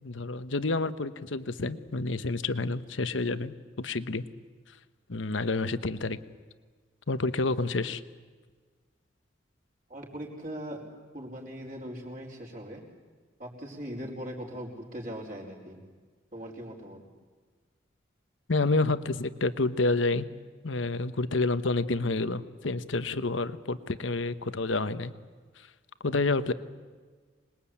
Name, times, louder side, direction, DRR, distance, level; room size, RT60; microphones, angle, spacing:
voice 1, 0.0-4.2 4.7-4.8 5.1-6.2 7.1-8.0 18.5-20.3 20.6-25.1 25.6-25.7 26.0-26.5, left 3 dB, 85° left, 13 dB, 1.1 m, -29 dB
voice 2, 9.9-10.9 11.1-12.8 13.4-15.8 16.3-17.0, equal, 45° right, -1 dB, 4.8 m, -40 dB
26.5 x 21.0 x 8.7 m, 1.5 s
head